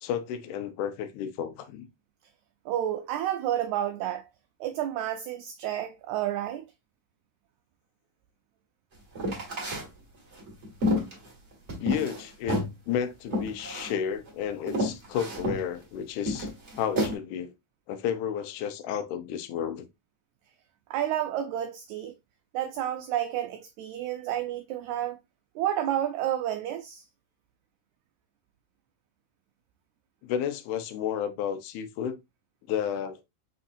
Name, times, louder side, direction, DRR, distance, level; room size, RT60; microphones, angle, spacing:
voice 1, 0.0-1.9 11.8-12.6 12.9-16.5 16.8-17.5 17.9-19.9 30.2-32.2 32.7-33.2, left 8 dB, 75° left, 2.1 m, -32 dB
voice 2, 2.6-4.2 4.6-6.6 20.9-22.1 22.5-25.2 25.5-27.0, right 11 dB, 80° right, 1.7 m, -30 dB
sound 1, 9.1-9.9 10.3-12.2 12.5-12.7 13.3-13.9 14.3-14.4 14.7-15.6 16.3-17.1, left 1 dB, 35° right, 1.2 m, -29 dB
5.6 x 3.5 x 2.5 m
omnidirectional pair, 3.8 m